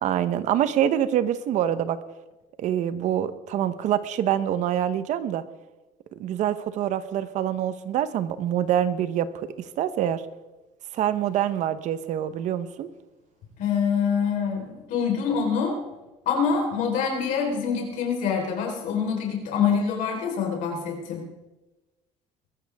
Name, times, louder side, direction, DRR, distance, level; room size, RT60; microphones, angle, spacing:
voice 1, 0.0-2.0 2.6-5.4 6.2-9.3 9.8-10.2 10.9-12.9, right 10 dB, 55° right, 12 dB, 1.0 m, -25 dB
voice 2, 13.6-15.8 16.3-21.2, left 6 dB, 65° left, 0 dB, 4.2 m, -25 dB
21.5 x 13.5 x 3.6 m, 1.1 s
cardioid pair, 135°, 14 cm